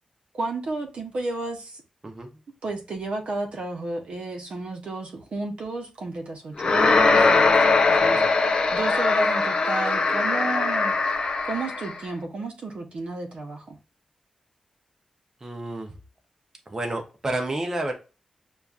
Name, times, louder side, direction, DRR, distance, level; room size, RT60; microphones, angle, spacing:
voice 1, 0.3-1.8 2.6-10.9 11.4-13.8, right 2 dB, 55° right, 0.7 m, -32 dB
sound 1, 6.6-12.0, left 3 dB, 40° left, 0.5 m, -21 dB
voice 2, 15.4-16.0 16.7-17.9, right 2 dB, 20° right, 0.6 m, -30 dB
6.6 x 2.3 x 2.4 m
wide cardioid pair, 175°, 2 cm